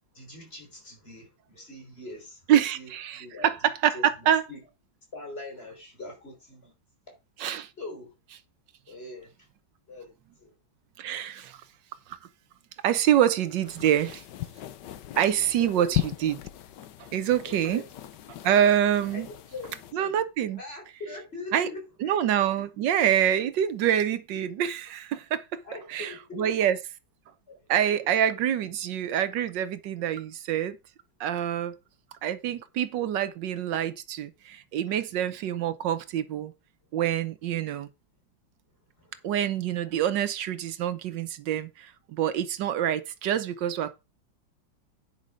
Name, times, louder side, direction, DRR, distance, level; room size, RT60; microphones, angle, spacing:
voice 1, 0.1-3.5 3.9-4.6 5.1-6.7 7.8-8.1 8.9-9.3 9.9-10.1 10.4-10.5 15.6-16.0 17.5-17.9 19.1-20.2 20.6-22.2 25.6-26.5 27.5-27.6 28.0-28.1 34.9-35.0 39.0-39.3, left 2 dB, 30° left, 3.7 m, -42 dB
voice 2, 2.5-4.4 7.4-7.7 11.0-11.6 12.1-12.2 12.8-14.2 15.2-16.4 17.0-17.8 18.4-19.3 19.9-20.6 21.5-21.7 22.0-25.6 25.9-26.8 27.7-30.8 31.2-31.8 32.2-36.5 36.9-37.9 39.2-43.9, right 10 dB, 70° right, 1.4 m, -26 dB
sound 1, 13.7-19.9, left 14 dB, 70° left, 1.3 m, -37 dB
9.8 x 5.2 x 5.1 m
omnidirectional pair, 2.1 m